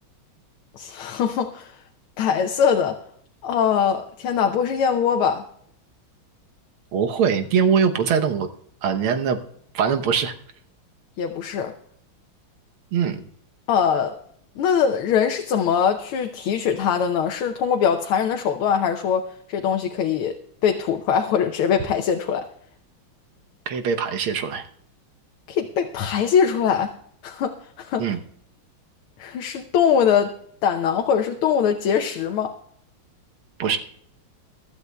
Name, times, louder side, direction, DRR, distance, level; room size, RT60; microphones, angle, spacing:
voice 1, 0.7-1.8 2.2-3.0 3.4-5.5 11.2-11.8 13.7-14.2 14.6-20.4 20.6-22.5 25.5-26.9 27.2-28.0 29.2-32.5, left 7 dB, 85° left, 1.7 m, -22 dB
voice 2, 6.9-8.5 8.8-9.4 9.7-10.3 12.9-13.2 23.7-24.6 28.0-28.2 33.6-33.8, right 7 dB, 80° right, 1.8 m, -22 dB
23.5 x 12.5 x 2.3 m
omnidirectional pair, 2.3 m